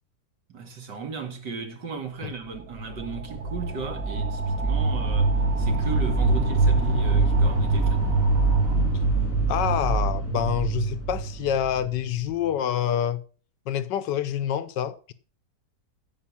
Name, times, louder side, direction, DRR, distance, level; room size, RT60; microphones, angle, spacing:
voice 1, 0.5-8.0, right 4 dB, 80° right, 2.8 m, -36 dB
sound 1, 1.5-9.3, right 4 dB, 55° right, 2.3 m, -41 dB
sound 2, 2.7-12.5, right 3 dB, 10° right, 3.0 m, -24 dB
voice 2, 9.5-13.2 13.7-15.1, left 10 dB, 85° left, 1.4 m, -27 dB
16.0 x 5.4 x 7.1 m
omnidirectional pair, 1.8 m